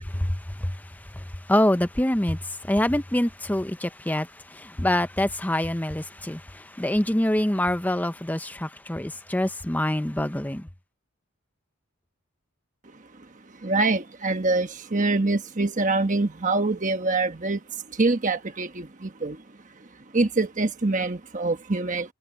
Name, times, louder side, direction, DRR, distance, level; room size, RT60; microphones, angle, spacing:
voice 1, 0.0-10.7, left 1 dB, 10° left, 0.7 m, -26 dB
voice 2, 13.1-19.9 20.1-22.1, right 3 dB, 35° right, 1.2 m, -25 dB
head